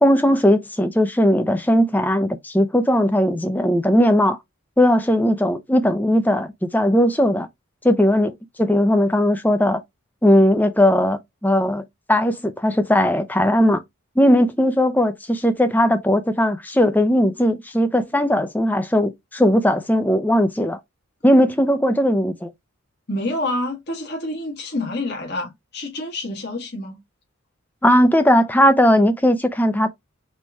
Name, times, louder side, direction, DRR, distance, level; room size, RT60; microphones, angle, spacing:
voice 1, 0.0-4.4 4.8-7.5 7.8-9.8 10.2-13.8 14.2-20.8 21.2-22.5 27.8-29.9, equal, 10° left, 0.6 m, -18 dB
voice 2, 23.1-27.0, left 1 dB, 50° left, 1.7 m, -28 dB
4.4 x 3.0 x 3.5 m
head